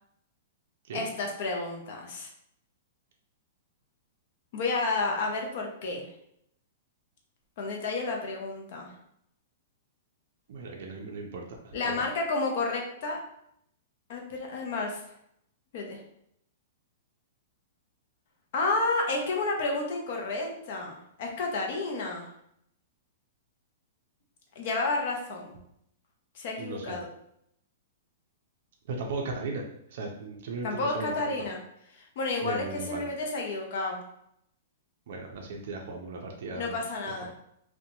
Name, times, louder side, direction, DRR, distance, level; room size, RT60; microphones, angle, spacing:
voice 1, 0.9-2.3 4.5-6.1 7.6-8.9 11.7-13.2 14.1-15.0 15.7-16.0 18.5-22.3 24.6-25.6 26.4-27.1 30.6-31.6 31.9-34.0 36.5-37.3, left 3 dB, 45° left, 1 dB, 0.5 m, -31 dB
voice 2, 10.5-12.1 26.6-27.0 28.9-29.6 29.9-31.3 32.4-33.1 35.1-36.8, right 3 dB, 55° right, 0 dB, 0.4 m, -37 dB
2.8 x 2.1 x 2.7 m, 0.73 s
hypercardioid pair, 170°, 0 cm